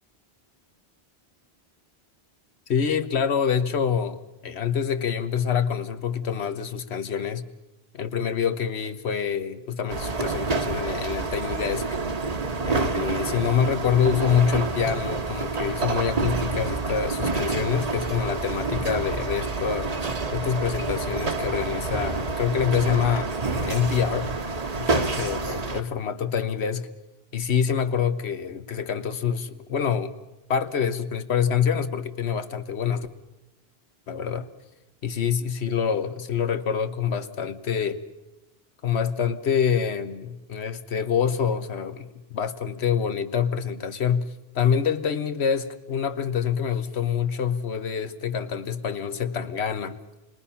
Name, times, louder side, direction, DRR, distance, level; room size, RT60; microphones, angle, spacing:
voice 1, 2.7-7.4 7.9-11.8 12.6-19.9 20.3-23.3 23.6-24.3 24.8-26.9 27.3-30.1 30.5-33.1 34.1-34.5 35.0-38.0 38.8-44.3 44.5-50.0, left 7 dB, 85° left, 1.3 m, -26 dB
sound 1, 9.9-25.8, right 3 dB, 40° right, 1.0 m, -28 dB
28.5 x 21.0 x 5.7 m
omnidirectional pair, 1.1 m